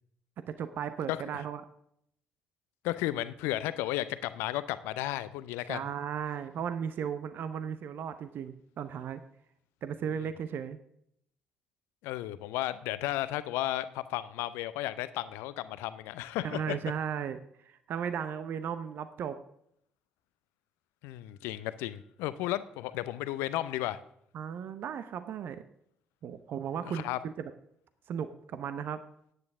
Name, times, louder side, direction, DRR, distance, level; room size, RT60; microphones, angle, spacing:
voice 1, 0.5-1.6 5.7-9.2 9.8-10.8 16.4-19.4 24.3-25.6 26.2-27.5 28.1-29.0, right 8 dB, 55° right, 11 dB, 0.8 m, -36 dB
voice 2, 1.1-1.4 2.8-5.8 12.0-16.8 21.0-24.0 26.8-27.2, left 15 dB, 70° left, 15 dB, 0.6 m, -34 dB
14.5 x 9.7 x 3.7 m, 0.70 s
figure-of-eight pair, 45°, 4 cm